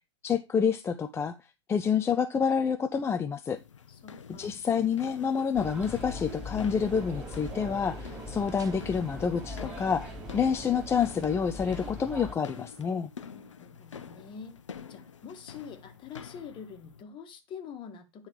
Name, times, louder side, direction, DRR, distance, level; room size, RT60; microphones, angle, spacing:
voice 1, 0.2-1.4 1.7-3.6 4.4-13.1, left 6 dB, 15° left, 0.5 m, -28 dB
sound 1, 3.6-17.0, left 7 dB, 85° left, 0.8 m, -48 dB
voice 2, 3.9-4.6 13.4-14.6 14.9-18.3, left 7 dB, 35° left, 1.6 m, -45 dB
sound 2, 5.5-12.3, left 2 dB, 5° right, 4.4 m, -41 dB
sound 3, 6.8-12.2, right 7 dB, 25° right, 0.6 m, -48 dB
9.7 x 3.9 x 4.7 m
hypercardioid pair, 105°, 15 cm